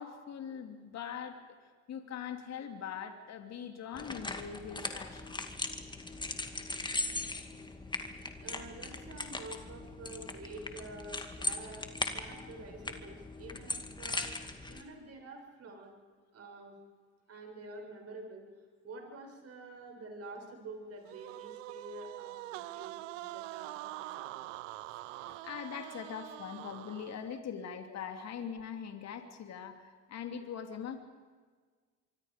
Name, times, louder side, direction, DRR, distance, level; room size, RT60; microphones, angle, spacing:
voice 1, 0.0-5.3 6.9-7.1 25.2-31.0, left 7 dB, 45° left, 6 dB, 3.0 m, -42 dB
sound 1, 3.9-14.8, left 2 dB, 10° left, 2.4 m, -39 dB
voice 2, 8.4-14.3 14.7-16.0 16.3-16.8 17.3-18.5 18.8-24.5, right 2 dB, 40° right, 2 dB, 7.6 m, -48 dB
sound 2, 21.0-27.4, right 17 dB, 80° right, 0.9 m, -44 dB
25.0 x 24.5 x 5.3 m, 1.5 s
hypercardioid pair, 80°, 37 cm